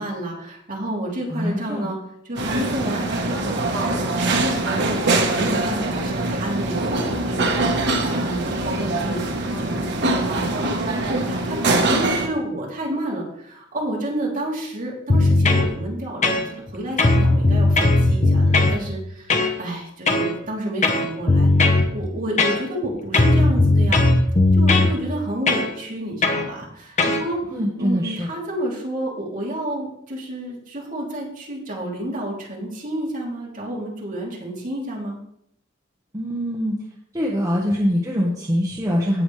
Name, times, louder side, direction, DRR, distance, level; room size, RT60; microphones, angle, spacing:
voice 1, 0.0-2.0 2.2-21.5 21.9-24.0 24.5-35.2, right 1 dB, 40° right, -4 dB, 3.1 m, -30 dB
voice 2, 1.3-1.9 27.5-28.3 36.1-36.8 37.1-39.2, equal, 15° right, -3 dB, 1.3 m, -23 dB
sound 1, 2.4-12.3, right 2 dB, 60° right, 1.4 m, -23 dB
sound 2, 15.1-15.7 16.2-16.7 17.0-18.8 19.3-19.5 20.1-20.3 20.8-21.9 22.4-22.9 23.1-24.9 25.5-25.7 26.2-26.5 27.0-27.2, left 2 dB, 35° left, 1.0 m, -17 dB
17.5 x 6.3 x 3.3 m, 0.72 s
head